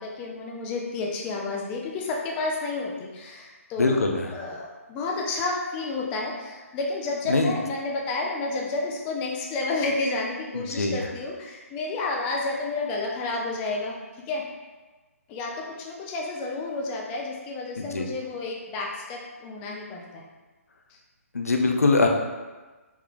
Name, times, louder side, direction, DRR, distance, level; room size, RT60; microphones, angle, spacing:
voice 1, 0.0-4.1 4.3-13.9 14.3-14.4 15.3-20.2, left 3 dB, 15° left, -2 dB, 0.3 m, -30 dB
voice 2, 3.8-4.3 7.3-7.5 10.5-11.0 17.8-18.1 21.3-22.1, left 3 dB, 75° left, 3 dB, 0.5 m, -22 dB
3.5 x 3.2 x 2.4 m, 1.2 s
figure-of-eight pair, 135°, 8 cm